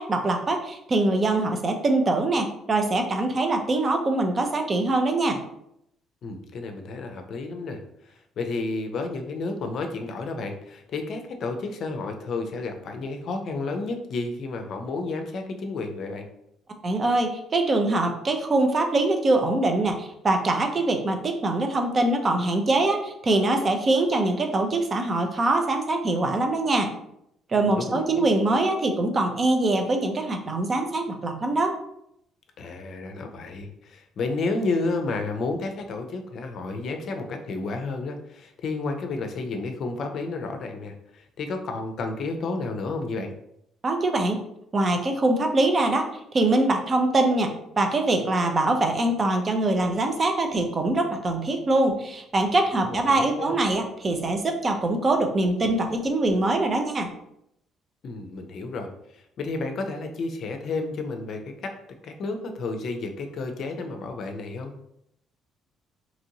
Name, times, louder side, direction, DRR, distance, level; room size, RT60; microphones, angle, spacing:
voice 1, 0.0-5.4 16.8-26.9 27.5-31.7 43.8-44.4 44.7-46.1 46.3-57.1, right 2 dB, 40° right, 5 dB, 0.6 m, -23 dB
voice 2, 6.2-16.3 27.7-28.3 32.6-43.3 52.8-53.5 58.0-61.7 62.0-64.7, left 3 dB, 60° left, 5 dB, 0.4 m, -31 dB
2.9 x 2.5 x 2.8 m, 0.78 s
supercardioid pair, 60°, 0 cm